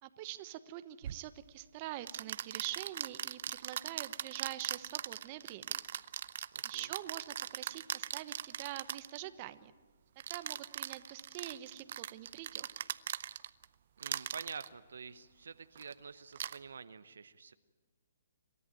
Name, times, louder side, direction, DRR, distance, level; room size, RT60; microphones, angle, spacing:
voice 1, 0.0-5.7 6.6-9.7 10.3-12.7, right 14 dB, 35° right, 12 dB, 1.0 m, -45 dB
sound 1, 1.0-1.2 2.1-9.2 10.2-13.6 14.0-14.7 15.7-15.9 16.3-16.6, right 10 dB, 55° right, 0.6 m, -40 dB
voice 2, 6.5-6.9 14.0-17.5, right 5 dB, 70° right, 12 dB, 0.9 m, -48 dB
27.0 x 14.0 x 9.2 m, 1.4 s
hypercardioid pair, 135°, 0 cm